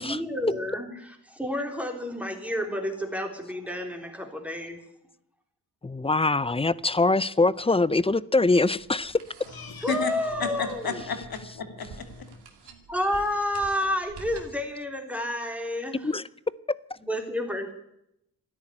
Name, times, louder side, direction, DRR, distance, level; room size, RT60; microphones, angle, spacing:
voice 1, 0.0-4.8 9.8-11.0 12.9-16.1 17.0-17.7, left 1 dB, 5° right, 3.5 m, -30 dB
voice 2, 5.8-9.2 16.0-16.2 16.7-16.8, left 3 dB, 15° left, 0.5 m, -23 dB
sound 1, 8.5-14.7, right 5 dB, 85° right, 2.5 m, -49 dB
voice 3, 9.5-12.4, left 5 dB, 65° left, 2.7 m, -33 dB
13.5 x 10.5 x 9.9 m
cardioid pair, 75°, 39 cm